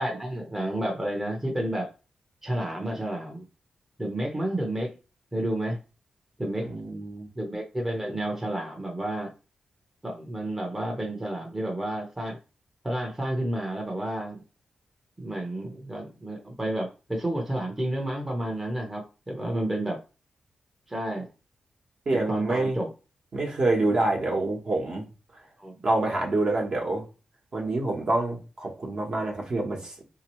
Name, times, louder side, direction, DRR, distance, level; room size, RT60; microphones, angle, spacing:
voice 1, 0.0-1.9 2.4-3.4 4.0-4.9 5.3-5.8 6.4-6.7 7.4-9.3 10.0-12.4 12.8-14.4 15.2-20.0 20.9-21.3 22.1-22.9 25.6-25.7, right 1 dB, 15° right, 0.7 m, -30 dB
voice 2, 6.6-7.3 19.5-19.7 22.1-22.8 23.3-25.1 25.8-27.0 27.5-30.0, right 2 dB, 50° right, 1.1 m, -27 dB
3.4 x 2.8 x 3.0 m
wide cardioid pair, 130°, 2 cm